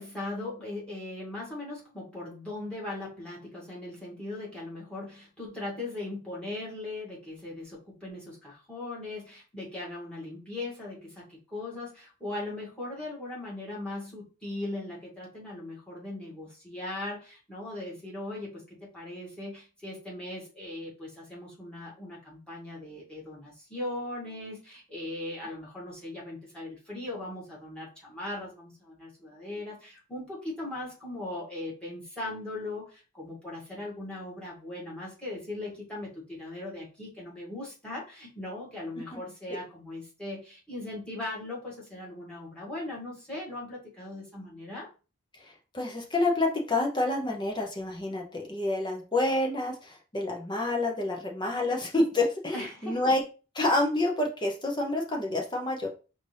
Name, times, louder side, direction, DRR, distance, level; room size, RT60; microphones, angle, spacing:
voice 1, 0.0-44.9 52.5-53.1, left 2 dB, 5° left, -4 dB, 1.9 m, -39 dB
voice 2, 45.4-53.2 53.6-55.9, left 2 dB, 20° left, 1 dB, 0.8 m, -28 dB
5.0 x 2.7 x 3.3 m, 0.33 s
head